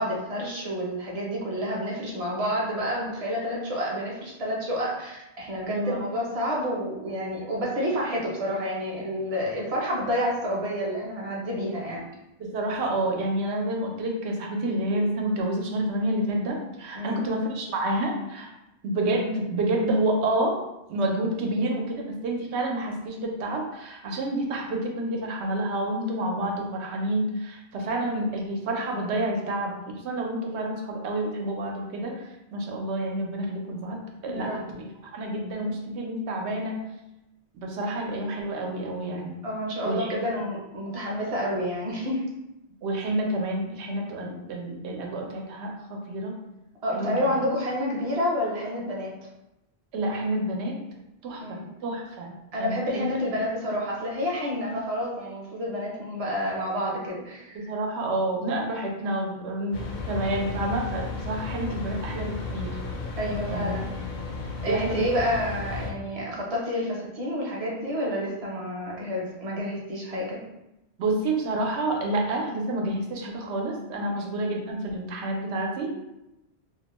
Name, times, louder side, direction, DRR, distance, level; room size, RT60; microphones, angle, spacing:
voice 1, 0.0-12.0 17.0-17.2 34.2-34.6 39.4-42.2 46.8-49.1 51.4-51.7 52.5-57.7 63.2-63.9 64.6-70.4 74.1-74.2, equal, 40° right, -3 dB, 0.6 m, -29 dB
voice 2, 5.7-6.0 12.4-18.5 18.8-20.6 20.9-29.7 30.0-34.8 35.1-36.8 37.6-39.3 39.8-40.1 42.8-45.7 46.1-46.3 47.0-47.2 49.9-50.7 51.2-52.3 52.6-53.0 57.5-59.8 60.1-62.7 63.5-63.7 64.6-65.0 71.0-75.9, right 1 dB, 85° right, 0 dB, 0.9 m, -29 dB
sound 1, 59.7-65.9, left 4 dB, 55° left, 0.6 m, -34 dB
2.4 x 2.1 x 2.9 m, 0.90 s
omnidirectional pair, 1.1 m